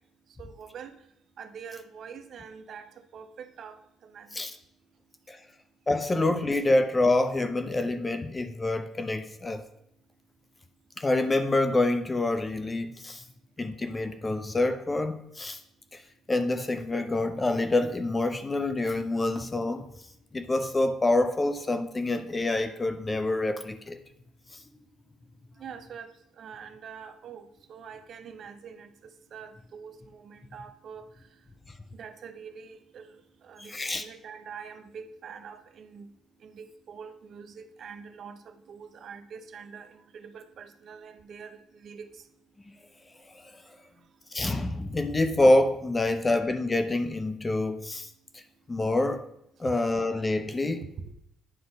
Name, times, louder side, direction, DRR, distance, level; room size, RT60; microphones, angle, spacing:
voice 1, 0.4-0.9 1.4-2.9 3.1-3.8 4.0-4.4 25.6-26.1 26.4-31.0 31.9-33.2 33.4-36.1 36.4-42.1 51.0-51.1, right 6 dB, 40° right, 0.6 m, -45 dB
voice 2, 5.9-9.6 11.0-13.2 13.6-15.6 15.9-16.0 16.3-19.9 20.3-24.0 33.6-34.0 44.3-48.1 48.7-49.3 49.6-50.8, left 2 dB, 15° left, 0.3 m, -26 dB
9.6 x 4.1 x 5.0 m
cardioid pair, 180°, 0 cm